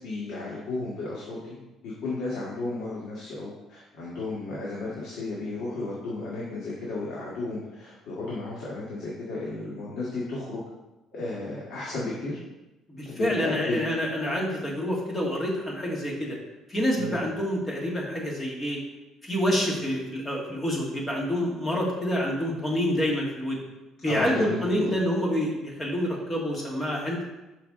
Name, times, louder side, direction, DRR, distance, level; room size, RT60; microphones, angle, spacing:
voice 1, 0.0-1.6 1.8-10.6 11.1-12.4 13.0-13.8 17.0-17.2 24.0-24.9, left 2 dB, 65° left, -6 dB, 1.6 m, -33 dB
voice 2, 12.9-16.4 16.7-18.8 19.2-23.6 24.0-27.2, equal, 15° left, -3 dB, 1.5 m, -27 dB
6.1 x 5.8 x 3.7 m, 1.0 s
cardioid pair, 155°, 0 cm